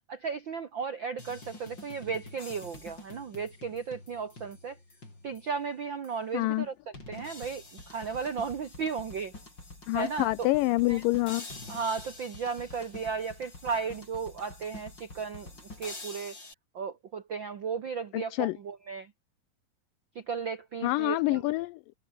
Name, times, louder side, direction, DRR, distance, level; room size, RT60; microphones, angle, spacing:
voice 1, 0.1-4.8 5.2-9.3 9.9-10.5 10.9-11.0 11.7-15.5 15.8-16.4 16.7-19.1 20.1-21.4, right 5 dB, 70° right, 1.1 m, -35 dB
sound 1, 1.2-5.6 6.0-6.1 6.9-16.5, left 2 dB, 30° left, 7.9 m, -47 dB
voice 2, 6.3-6.7 9.9-11.5 18.1-18.6 20.8-21.8, left 20 dB, 80° left, 2.0 m, -27 dB
omnidirectional pair, 4.2 m